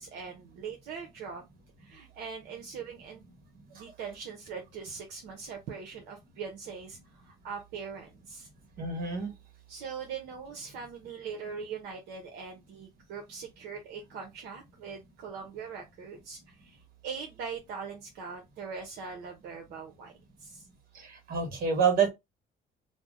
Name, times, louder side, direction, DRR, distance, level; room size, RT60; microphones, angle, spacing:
voice 1, 0.0-1.4 1.8-3.2 3.7-8.5 9.7-20.1 20.4-20.7, right 6 dB, 80° right, 0.8 m, -41 dB
voice 2, 8.8-9.3 20.9-22.1, right 6 dB, 60° right, 1.3 m, -27 dB
2.7 x 2.1 x 3.5 m
cardioid pair, 110°, 17 cm